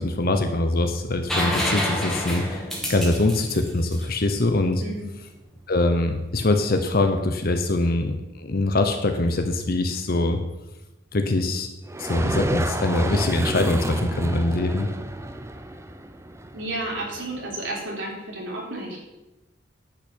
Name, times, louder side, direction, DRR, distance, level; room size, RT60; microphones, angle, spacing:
voice 1, 0.0-2.6 2.9-4.8 5.7-10.4 11.1-11.7 12.0-14.9, left 2 dB, 50° left, 6 dB, 0.9 m, -23 dB
sound 1, 1.3-5.0 6.9-7.0, left 1 dB, ahead, 2.2 m, -28 dB
voice 2, 4.8-5.2 16.5-19.0, right 2 dB, 70° right, -2 dB, 3.8 m, -32 dB
sound 2, 11.9-17.5, right 1 dB, 15° right, 0.7 m, -30 dB
10.5 x 5.7 x 8.1 m, 1.0 s
head